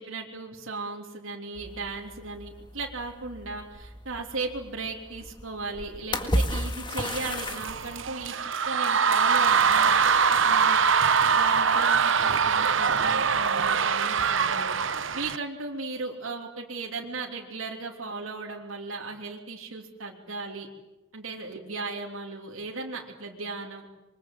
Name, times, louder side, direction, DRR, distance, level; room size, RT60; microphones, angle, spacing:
voice 1, 0.0-10.1 10.4-10.8 11.3-14.7 15.1-20.7 21.1-23.8, right 3 dB, 90° right, -1 dB, 3.2 m, -36 dB
sound 1, 1.6-8.3, equal, 20° left, 1.9 m, -34 dB
sound 2, 7.0-15.4, right 6 dB, 70° right, 0.9 m, -23 dB
26.0 x 24.0 x 8.0 m, 1.1 s
head